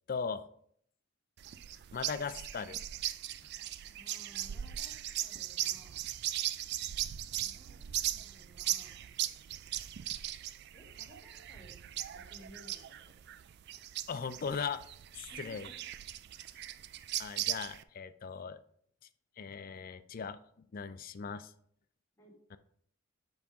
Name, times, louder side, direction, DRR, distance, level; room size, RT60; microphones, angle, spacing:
voice 1, 0.1-0.5 1.9-2.8 14.1-14.8 15.1-15.7 17.2-18.6 19.4-21.5 22.5-22.6, left 6 dB, 45° left, 12 dB, 0.4 m, -38 dB
sound 1, 1.4-17.8, right 13 dB, 55° right, 0.3 m, -39 dB
voice 2, 3.9-6.0 7.2-7.9 8.2-9.0 10.7-11.8 12.1-13.1 15.3-15.8 22.2-22.4, equal, 15° left, -5 dB, 2.3 m, -58 dB
7.2 x 5.3 x 3.6 m, 0.65 s
head